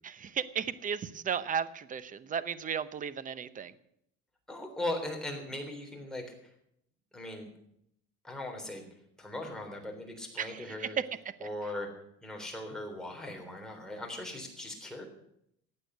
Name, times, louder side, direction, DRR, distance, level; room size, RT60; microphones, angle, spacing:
voice 1, 0.0-3.7 10.4-10.9 11.4-11.5, right 7 dB, 30° right, 15 dB, 0.8 m, -35 dB
voice 2, 4.5-6.3 7.1-7.5 8.2-8.8 9.2-11.0 11.4-11.9 12.2-15.0, left 1 dB, ahead, 1 dB, 3.6 m, -39 dB
15.0 x 9.0 x 8.0 m, 0.75 s
cardioid pair, 135°, 29 cm